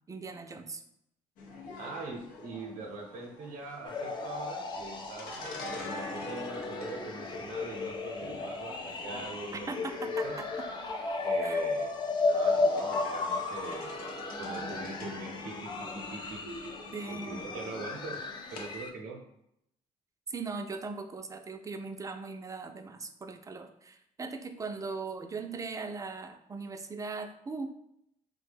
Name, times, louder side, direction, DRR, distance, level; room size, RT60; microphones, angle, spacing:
voice 1, 0.1-0.8 9.7-10.7 11.4-11.6 16.9-17.5 20.3-27.7, right 4 dB, 25° right, 7 dB, 0.4 m, -39 dB
sound 1, 1.4-18.8, left 1 dB, 90° left, 0.6 m, -44 dB
voice 2, 1.8-5.3 5.7-10.4 11.2-11.9 12.2-13.9 14.4-16.4 17.1-18.2 18.5-19.2, right 3 dB, 85° right, 2 dB, 0.6 m, -43 dB
sound 2, 3.8-18.9, left 3 dB, 35° left, 0.5 m, -34 dB
3.1 x 2.1 x 3.3 m, 0.77 s
supercardioid pair, 75°, 14 cm